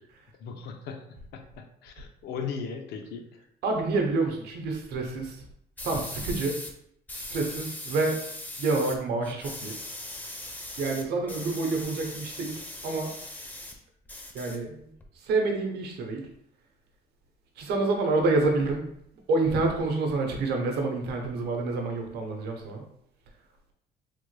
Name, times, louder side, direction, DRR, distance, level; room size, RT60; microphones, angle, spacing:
voice 1, 0.4-1.0 1.3-3.4, left 6 dB, 75° left, 5 dB, 0.5 m, -37 dB
voice 2, 3.6-5.4 5.8-6.6 7.1-8.3 8.6-9.8 10.8-12.5 12.8-13.1 14.3-16.3 17.6-18.9 19.3-22.8, right 3 dB, 75° right, 3 dB, 0.7 m, -28 dB
sound 1, 5.8-6.7 7.1-9.0 9.2-13.8 14.1-15.1, left 1 dB, 10° left, 0.4 m, -40 dB
3.3 x 2.1 x 3.1 m, 0.72 s
cardioid pair, 110°, 17 cm